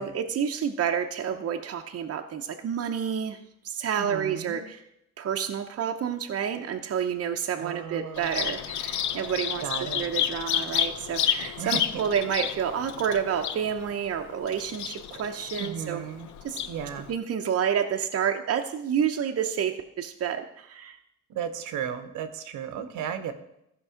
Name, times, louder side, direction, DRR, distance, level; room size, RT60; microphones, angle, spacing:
voice 1, 0.0-3.4 3.6-4.8 5.2-16.0 16.4-16.6 17.1-21.0, right 8 dB, 50° right, 4 dB, 0.8 m, -29 dB
voice 2, 4.0-4.6 7.6-8.6 9.6-10.1 11.6-11.8 15.6-16.3 16.7-17.1 21.3-23.3, right 8 dB, 85° right, 9 dB, 1.1 m, -35 dB
Bird vocalization bird call bird song, 8.2-17.1, left 10 dB, 75° left, 0.7 m, -31 dB
14.5 x 5.5 x 5.0 m, 0.81 s
cardioid pair, 90°, 30 cm